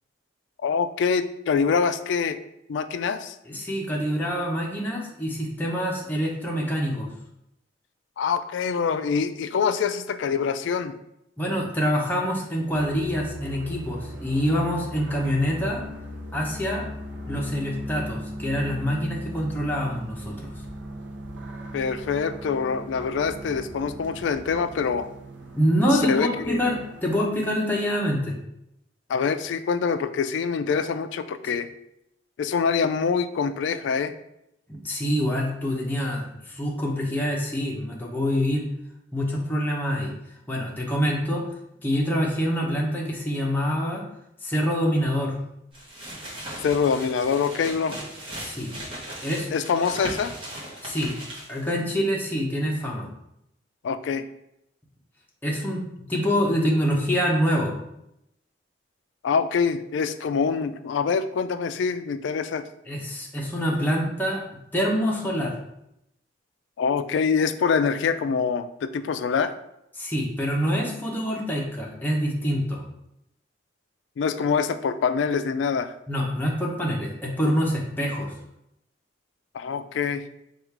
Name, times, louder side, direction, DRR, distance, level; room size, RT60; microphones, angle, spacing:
voice 1, 0.6-2.4 2.7-3.4 8.2-10.9 21.7-25.1 26.1-26.6 29.1-31.7 32.4-34.1 46.6-48.0 49.5-50.3 53.8-54.2 59.2-62.6 66.8-69.5 74.2-75.9 79.5-80.2, left 6 dB, 75° left, 10 dB, 0.3 m, -25 dB
voice 2, 3.5-7.1 11.4-15.8 16.3-16.9 17.3-20.5 25.5-28.4 34.7-38.6 39.1-40.1 40.5-41.4 41.8-44.1 44.4-45.4 48.4-48.7 49.2-49.5 50.8-51.1 51.5-53.1 55.4-55.8 56.1-57.7 62.9-64.4 64.7-65.6 70.0-72.8 76.1-78.3, equal, 10° left, -2 dB, 0.7 m, -26 dB
sound 1, 12.7-27.2, equal, 80° right, 0.7 m, -38 dB
sound 2, 45.7-51.7, right 1 dB, 30° right, 1.1 m, -38 dB
4.9 x 2.4 x 4.5 m, 0.81 s
head